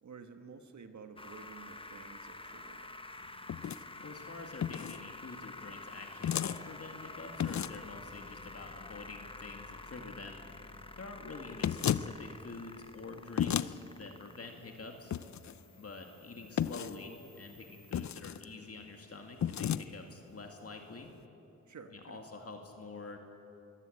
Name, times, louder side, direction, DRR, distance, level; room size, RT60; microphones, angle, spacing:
voice 1, 0.0-3.0 20.0-20.2 21.7-22.2, right 5 dB, 70° right, 7 dB, 1.6 m, -52 dB
sound 1, 1.2-18.1, left 2 dB, 20° left, 1.1 m, -50 dB
sound 2, 3.5-3.8 4.6-5.0 6.2-6.6 7.4-7.9 11.6-12.1 13.4-13.7 15.1-15.5 16.6-17.0 17.9-18.5 19.4-19.8, left 9 dB, 65° left, 0.6 m, -32 dB
voice 2, 4.0-10.4 11.0-15.2 15.8-21.1 21.9-23.2, left 3 dB, 50° left, 3 dB, 2.2 m, -47 dB
23.0 x 15.0 x 8.7 m, 2.7 s
cardioid pair, 75°, 30 cm